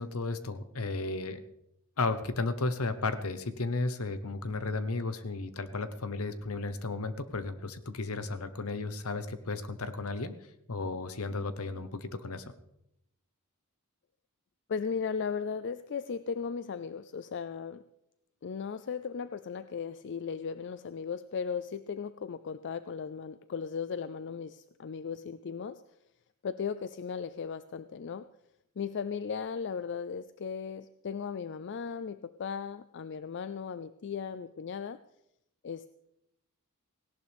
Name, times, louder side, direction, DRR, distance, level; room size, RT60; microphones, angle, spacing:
voice 1, 0.0-1.4 2.0-10.4 10.7-12.5, left 3 dB, 70° left, 11 dB, 1.0 m, -34 dB
voice 2, 14.7-17.8 18.4-25.8 26.4-28.3 28.8-35.0 35.6-35.9, left 6 dB, 55° left, 14 dB, 0.4 m, -36 dB
17.5 x 17.0 x 3.5 m, 0.82 s
head